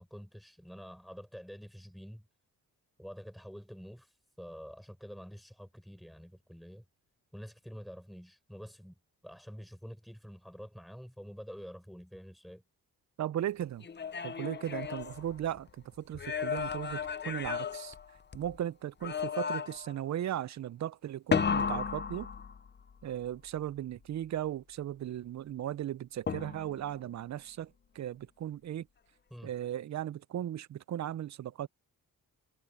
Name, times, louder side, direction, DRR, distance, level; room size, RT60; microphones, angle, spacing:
voice 1, 0.0-2.2 3.0-4.1 4.4-6.8 7.3-8.9 9.2-12.6 29.3-29.5, equal, ahead, 6.6 m, -47 dB
voice 2, 13.2-13.9 14.2-15.7 16.0-17.9 18.3-22.3 23.0-28.9 29.4-31.7, right 11 dB, 50° right, 0.5 m, -37 dB
sound 1, 13.8-15.7 16.1-18.6 19.0-20.0 21.3-22.9 26.3-26.9, left 6 dB, 30° left, 0.7 m, -34 dB
cardioid pair, 110°, 35 cm